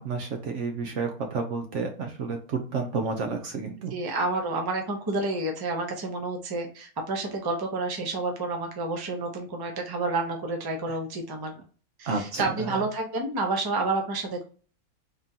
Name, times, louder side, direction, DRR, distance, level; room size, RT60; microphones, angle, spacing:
voice 1, 0.0-3.9 12.1-12.8, right 4 dB, 65° right, 4 dB, 0.9 m, -31 dB
voice 2, 3.9-11.5 12.0-14.4, right 2 dB, 20° right, 2 dB, 0.6 m, -29 dB
3.6 x 3.6 x 2.7 m, 0.39 s
omnidirectional pair, 1.6 m